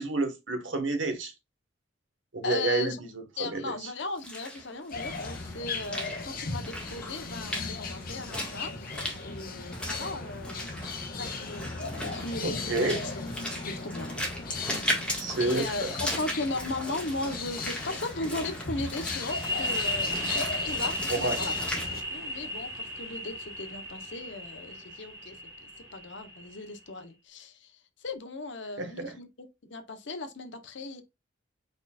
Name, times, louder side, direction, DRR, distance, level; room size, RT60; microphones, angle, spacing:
voice 1, 0.0-1.3 2.3-2.9 3.4-3.6 12.4-13.0 15.1-15.9 21.2-21.4 28.8-29.1, right 2 dB, 85° right, 1.5 m, -29 dB
voice 2, 2.4-3.0 3.4-13.1 13.6-14.1 15.4-21.5 22.1-25.4 25.6-31.0, left 2 dB, 70° left, 1.0 m, -37 dB
Walk footsteps / Splash splatter, 4.0-21.8, left 1 dB, 5° left, 1.7 m, -38 dB
sound 1, 4.9-22.0, left 3 dB, 50° left, 1.2 m, -38 dB
sound 2, 19.3-26.8, left 1 dB, 15° right, 2.4 m, -34 dB
4.9 x 4.4 x 2.4 m
head